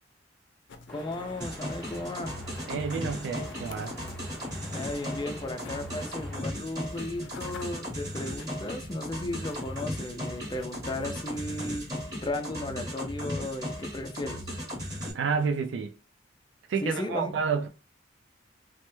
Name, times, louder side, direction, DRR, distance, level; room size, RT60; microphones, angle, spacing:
sound 1, 0.7-12.1, left 3 dB, 85° left, 0.4 m, -50 dB
voice 1, 0.9-2.3 4.7-14.5 16.8-17.3, left 1 dB, 25° left, 0.4 m, -35 dB
sound 2, 0.9-6.4, left 1 dB, 5° left, 0.7 m, -47 dB
sound 3, 1.4-15.1, equal, 20° right, 1.0 m, -37 dB
voice 2, 2.7-4.0 15.1-15.9 16.7-17.7, right 5 dB, 80° right, 0.3 m, -29 dB
3.1 x 2.0 x 3.0 m
head